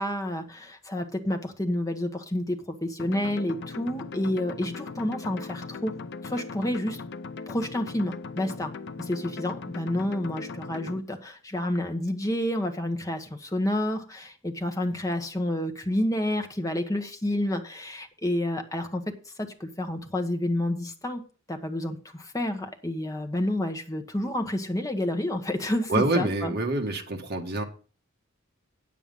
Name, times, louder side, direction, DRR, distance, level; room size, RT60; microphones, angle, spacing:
voice 1, 0.0-5.9 6.2-7.0 7.5-8.7 9.0-21.2 21.5-26.5, left 1 dB, 15° left, 1.2 m, -29 dB
sound 1, 3.0-11.0, left 4 dB, 55° left, 0.6 m, -39 dB
voice 2, 25.9-27.6, right 2 dB, 50° right, 1.5 m, -26 dB
9.1 x 7.5 x 5.4 m
head